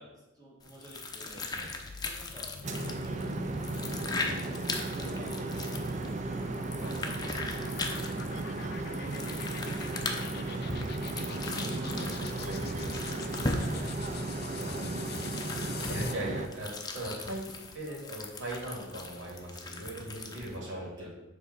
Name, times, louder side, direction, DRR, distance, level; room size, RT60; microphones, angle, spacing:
voice 1, 0.0-1.5 2.0-4.6 4.9-7.2 7.6-10.8 13.5-16.2 17.9-18.2 20.3-20.4 20.8-21.1, equal, 20° right, -3 dB, 1.8 m, -52 dB
sound 1, 0.6-20.6, left 3 dB, 20° left, 0.7 m, -39 dB
sound 2, 1.6-16.3, left 6 dB, 55° left, 0.5 m, -45 dB
sound 3, 2.6-16.5, right 3 dB, 40° right, 0.5 m, -35 dB
voice 2, 11.3-13.2 14.6-14.9 15.9-17.5 17.7-21.1, right 1 dB, 70° right, -3 dB, 2.3 m, -39 dB
7.2 x 3.4 x 5.9 m, 0.99 s
head